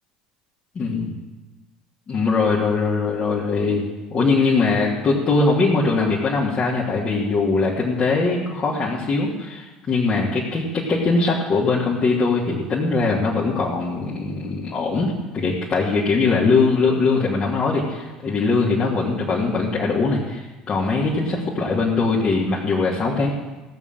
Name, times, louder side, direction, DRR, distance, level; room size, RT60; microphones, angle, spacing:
voice 1, 0.7-1.1 2.1-3.8 4.1-23.3, left 3 dB, 35° left, -6 dB, 2.7 m, -21 dB
16.5 x 7.3 x 7.4 m, 1.2 s
figure-of-eight pair, 65°, 3 cm